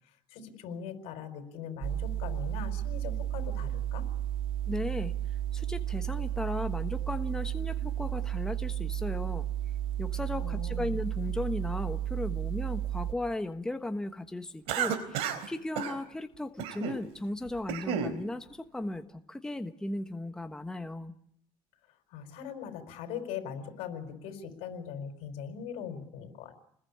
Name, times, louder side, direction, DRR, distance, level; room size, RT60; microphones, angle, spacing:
voice 1, 0.3-4.0 10.3-10.9 22.1-26.5, left 7 dB, 80° left, 8 dB, 5.0 m, -40 dB
sound 1, 1.8-13.1, right 11 dB, 55° right, 2.5 m, -33 dB
voice 2, 4.7-5.1 5.5-9.5 10.0-21.1, left 1 dB, 5° left, 7 dB, 1.3 m, -36 dB
Cough, 14.7-15.5 15.7-16.0 16.6-17.0 17.5-18.2, right 8 dB, 80° right, 3.9 m, -32 dB
30.0 x 21.0 x 8.7 m, 0.72 s
cardioid pair, 135°, 10 cm